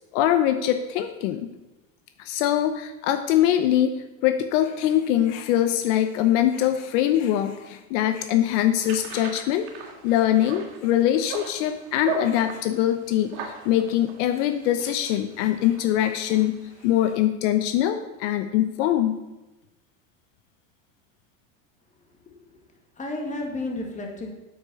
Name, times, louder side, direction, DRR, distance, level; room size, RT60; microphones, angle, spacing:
voice 1, 0.1-1.5 2.2-9.7 10.0-19.2, left 11 dB, 70° left, 9 dB, 0.9 m, -23 dB
sound 1, 8.8-17.1, right 4 dB, 70° right, 2.5 m, -38 dB
voice 2, 22.3-22.6 23.0-24.3, left 2 dB, 20° left, 1 dB, 2.2 m, -32 dB
8.5 x 8.1 x 6.9 m, 1.0 s
supercardioid pair, 145°, 38 cm